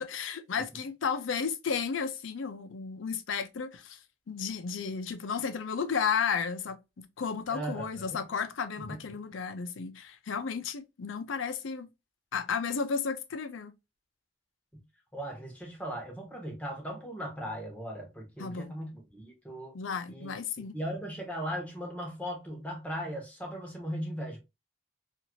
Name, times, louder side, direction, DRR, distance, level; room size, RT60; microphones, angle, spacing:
voice 1, 0.1-4.0 4.3-11.9 12.3-13.7 18.4-18.8 19.7-20.8, left 6 dB, 80° left, 0.5 m, -33 dB
voice 2, 7.5-8.2 8.8-9.2 15.1-19.8 20.1-20.4 20.7-24.4, equal, 5° left, 0.8 m, -38 dB
2.8 x 2.5 x 2.8 m
head